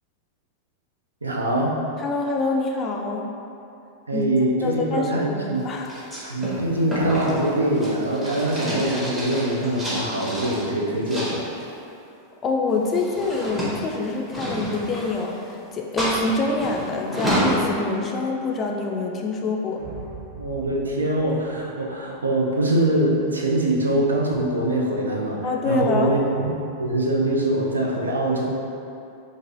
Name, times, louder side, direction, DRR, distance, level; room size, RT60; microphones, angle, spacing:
voice 1, 1.2-1.8 4.1-5.6 6.2-11.4 20.4-26.5 26.8-28.4, right 1 dB, 75° right, -2 dB, 0.4 m, -23 dB
voice 2, 2.0-3.3 4.1-4.2 4.6-5.9 12.4-19.8 25.4-26.1, left 3 dB, 25° left, 0 dB, 0.3 m, -26 dB
sound 1, 5.9-10.6 11.1-11.7 12.7-15.5 16.0-17.6, right 1 dB, 10° right, 0.8 m, -29 dB
sound 2, 19.8-22.2, right 6 dB, 55° right, 1.3 m, -42 dB
2.9 x 2.5 x 2.6 m, 2.7 s
figure-of-eight pair, 90°, 0 cm